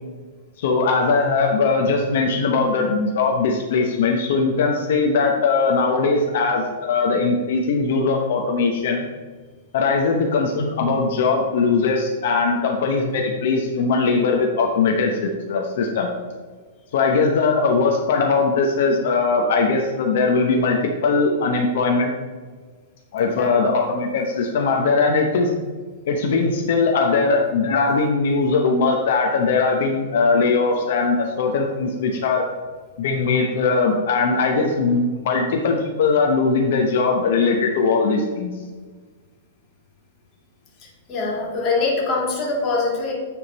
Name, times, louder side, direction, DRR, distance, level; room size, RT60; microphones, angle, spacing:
voice 1, 0.6-9.1 9.7-16.1 16.9-22.1 23.1-25.5 26.1-32.4 33.0-38.5, left 4 dB, 60° left, 1 dB, 0.8 m, -20 dB
voice 2, 41.1-43.1, left 3 dB, 25° left, -2 dB, 1.9 m, -23 dB
9.5 x 3.6 x 4.1 m, 1.5 s
supercardioid pair, 160°, 0 cm